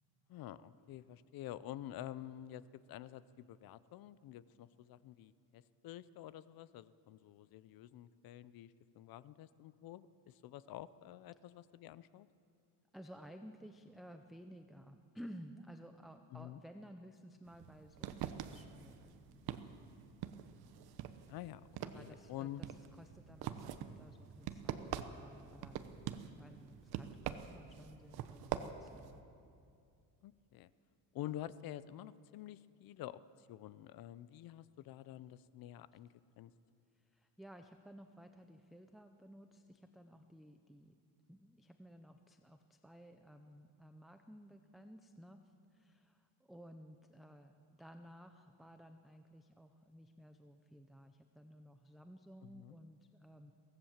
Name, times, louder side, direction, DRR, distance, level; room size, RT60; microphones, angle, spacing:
voice 1, 0.3-12.3 16.3-16.6 21.3-21.6 21.9-22.6 30.2-30.7 31.1-36.5 52.4-52.7, left 13 dB, 55° left, 17 dB, 0.7 m, -49 dB
voice 2, 12.9-19.7 21.8-29.2 36.9-40.9 41.3-45.4 45.7-53.5, equal, ahead, 6 dB, 0.5 m, -56 dB
sound 1, 17.5-29.2, right 10 dB, 60° right, 1.1 m, -45 dB
23.5 x 17.0 x 7.3 m, 2.5 s
cardioid pair, 160°, 43 cm